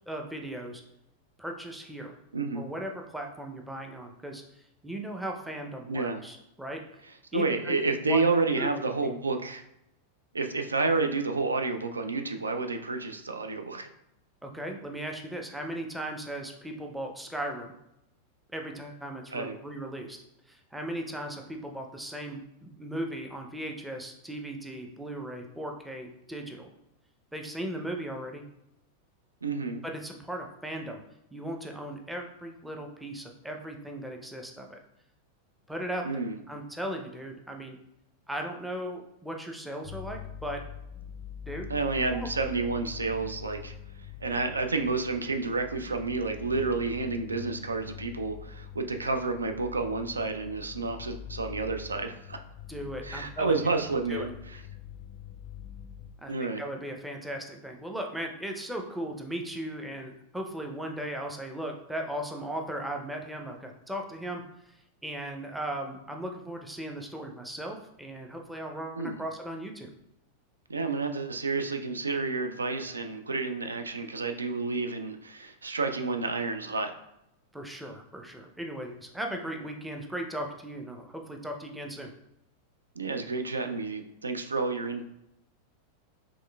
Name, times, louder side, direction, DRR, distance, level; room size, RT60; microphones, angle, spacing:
voice 1, 0.1-0.8 1.4-2.1 2.5-4.4 4.8-6.8 7.3-7.8 8.1-8.2 8.6-9.1 14.4-17.7 18.5-20.2 20.5-26.7 27.3-28.4 29.8-31.0 31.3-34.8 35.7-37.8 38.3-40.6 41.4-41.7 42.1-42.3 52.7-53.6 54.1-54.3 56.2-56.3 56.6-64.4 64.7-69.9 77.5-82.1, right 1 dB, 5° right, 2 dB, 0.6 m, -37 dB
voice 2, 2.3-2.7 5.9-6.2 7.3-9.6 10.3-13.9 19.3-19.6 29.4-29.8 36.0-36.4 41.7-43.7 44.2-52.4 53.0-54.6 56.3-56.6 69.0-69.2 70.7-76.9 83.0-85.0, right 3 dB, 75° right, 6 dB, 0.3 m, -30 dB
sound 1, 39.8-56.1, left 9 dB, 40° left, 0.4 m, -44 dB
5.4 x 3.1 x 2.3 m, 0.84 s
figure-of-eight pair, 90°, 0 cm